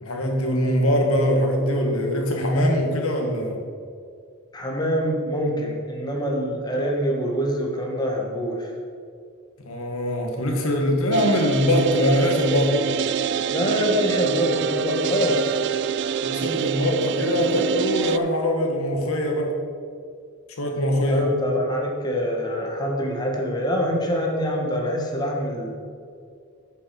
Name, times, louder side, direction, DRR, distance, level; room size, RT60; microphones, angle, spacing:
voice 1, 0.0-3.6 9.7-12.8 16.2-19.5 20.6-21.3, equal, 75° left, 1 dB, 1.8 m, -22 dB
voice 2, 4.5-8.7 13.5-15.4 21.1-25.7, equal, 20° left, 0 dB, 1.5 m, -25 dB
sound 1, 11.1-18.2, right 8 dB, 55° right, 0.3 m, -26 dB
9.3 x 6.7 x 5.8 m, 2.3 s
head